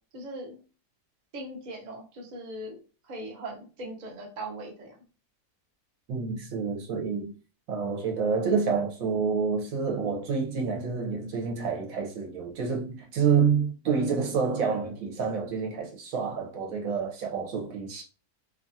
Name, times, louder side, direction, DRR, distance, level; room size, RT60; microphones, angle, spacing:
voice 1, 0.1-0.6 1.3-2.8 3.0-5.0, right 1 dB, 45° right, 0.5 m, -39 dB
voice 2, 6.1-7.3 7.7-18.0, right 5 dB, 70° right, 1.0 m, -28 dB
2.8 x 2.3 x 2.6 m
omnidirectional pair, 1.6 m